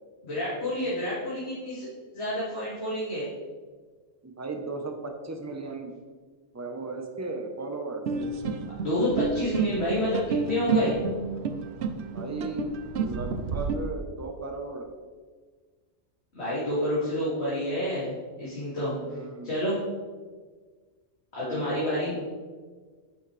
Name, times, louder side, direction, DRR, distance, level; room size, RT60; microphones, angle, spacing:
voice 1, 0.2-1.9 2.1-3.3 8.8-11.0 16.3-19.0 19.4-19.8 21.3-22.1, left 1 dB, 60° left, -11 dB, 2.8 m, -29 dB
voice 2, 4.2-5.9 6.5-8.0 12.0-12.7 13.0-14.9 19.0-19.5 21.5-22.3, right 2 dB, 15° right, 3 dB, 0.8 m, -35 dB
sound 1, 8.1-13.8, right 5 dB, 70° right, 0.9 m, -30 dB
9.9 x 6.4 x 3.3 m, 1.5 s
omnidirectional pair, 1.2 m